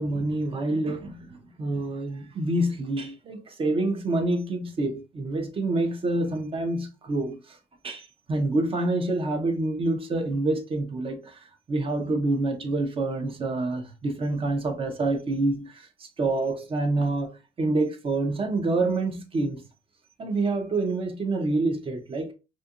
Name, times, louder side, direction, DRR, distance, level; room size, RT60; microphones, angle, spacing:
voice 1, 0.0-7.6 7.8-11.4 11.7-19.6 20.2-22.3, right 2 dB, 35° right, 0.6 m, -27 dB
2.7 x 2.4 x 2.4 m
cardioid pair, 110°, 17 cm